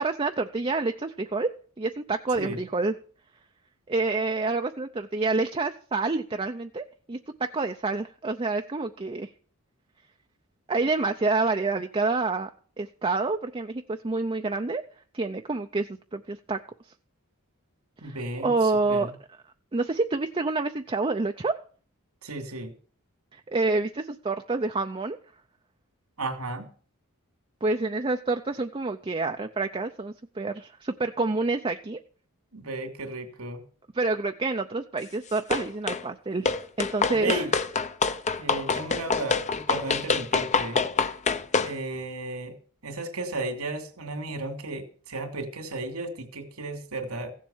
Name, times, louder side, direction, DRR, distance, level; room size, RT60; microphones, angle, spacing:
voice 1, 0.0-1.5 1.8-2.9 3.9-9.3 10.7-12.5 12.8-14.8 15.1-16.6 18.0-19.1 19.7-21.6 23.3-25.2 27.6-32.0 33.9-36.5 36.8-37.5, right 3 dB, 25° right, 5 dB, 0.6 m, -28 dB
voice 2, 18.0-18.5 18.9-19.1 22.2-22.7 26.2-26.7 32.5-33.6 37.1-37.5 38.4-40.8 41.3-42.5 42.8-47.3, right 2 dB, 85° right, 6 dB, 2.9 m, -34 dB
sound 1, 35.5-36.0 36.5-41.7, left 4 dB, 30° left, 0.7 m, -26 dB
16.0 x 7.5 x 7.2 m, 0.43 s
head